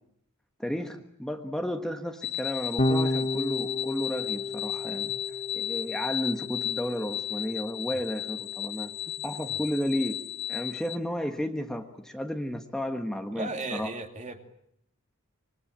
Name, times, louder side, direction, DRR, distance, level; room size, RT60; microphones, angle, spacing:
voice 1, 0.6-5.2 5.5-8.9 9.2-10.2 10.5-13.9, equal, 5° left, 4 dB, 1.5 m, -33 dB
sound 1, 2.2-11.0, left 12 dB, 60° left, 1.1 m, -34 dB
Electric guitar / Bass guitar, 2.8-9.2, left 1 dB, 30° left, 1.3 m, -33 dB
voice 2, 13.3-14.4, right 3 dB, 35° right, 5 dB, 2.8 m, -36 dB
26.0 x 23.5 x 8.8 m, 0.75 s
head